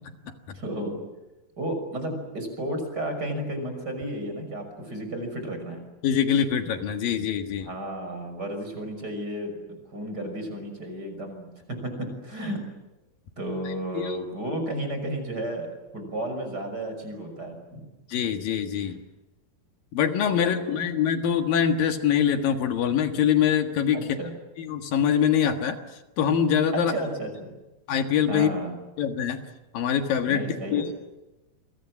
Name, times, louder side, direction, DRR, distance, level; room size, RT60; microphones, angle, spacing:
voice 1, 0.5-1.0 1.6-5.8 7.6-12.6 13.4-15.7 15.9-17.9 18.8-18.9 20.1-20.8 23.9-24.3 26.7-27.5 28.3-28.7 30.3-30.9, right 1 dB, 25° right, 6 dB, 6.4 m, -33 dB
voice 2, 6.0-7.7 13.9-14.2 18.1-19.0 19.9-24.0 24.6-25.8 26.2-26.9 27.9-28.5 29.0-29.4 29.7-30.4 30.7-30.9, left 8 dB, 70° left, 6 dB, 3.2 m, -24 dB
29.5 x 23.5 x 7.4 m, 1.0 s
omnidirectional pair, 4.3 m